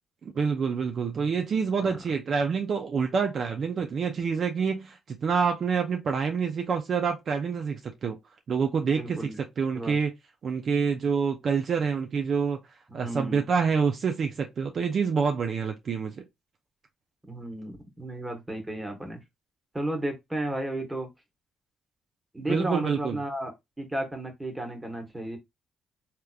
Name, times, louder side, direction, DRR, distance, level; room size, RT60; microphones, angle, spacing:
voice 1, 0.2-8.2 8.5-10.1 10.4-12.6 12.9-16.2 22.5-23.2, right 6 dB, 55° right, 0.5 m, -27 dB
voice 2, 8.9-9.4 9.7-10.0 12.9-13.5 17.3-19.2 19.7-21.1 22.3-23.5 23.8-25.4, right 1 dB, 15° right, 1.3 m, -33 dB
3.4 x 2.9 x 2.4 m
cardioid pair, 90°, 0 cm